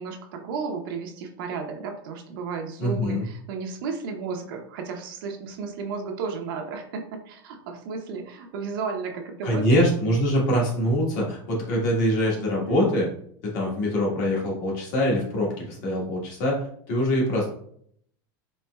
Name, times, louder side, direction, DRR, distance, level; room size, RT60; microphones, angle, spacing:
voice 1, 0.0-9.9 12.6-12.8, right 5 dB, 70° right, 3 dB, 0.6 m, -33 dB
voice 2, 2.8-3.3 9.4-13.1 13.4-17.5, equal, 55° left, -2 dB, 1.4 m, -24 dB
4.2 x 3.1 x 2.2 m, 0.64 s
supercardioid pair, 170°, 12 cm